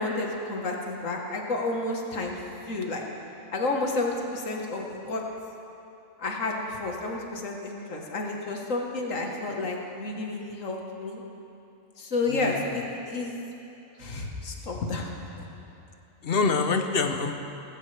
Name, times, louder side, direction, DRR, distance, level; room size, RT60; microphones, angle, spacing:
voice 1, 0.0-2.4 2.7-3.0 3.5-5.2 6.2-11.2 12.0-13.3 14.0-15.1, left 2 dB, 80° left, 1 dB, 1.8 m, -30 dB
voice 2, 12.3-12.8 16.2-17.4, left 4 dB, 50° left, 6 dB, 1.0 m, -26 dB
18.0 x 15.5 x 3.3 m, 2.8 s
omnidirectional pair, 1.3 m